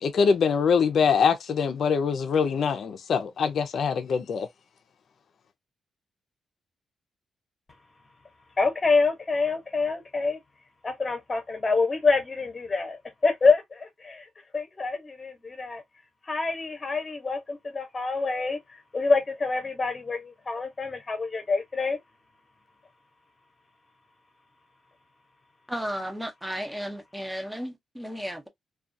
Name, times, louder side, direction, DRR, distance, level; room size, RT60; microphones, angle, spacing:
voice 1, 0.0-4.5, left 6 dB, 60° left, 0.5 m, -23 dB
voice 2, 8.6-10.4 10.8-15.8 16.3-22.0, left 4 dB, 25° left, 0.9 m, -26 dB
voice 3, 25.7-28.5, equal, 5° right, 0.7 m, -34 dB
2.4 x 2.3 x 2.6 m
cardioid pair, 115°, 0 cm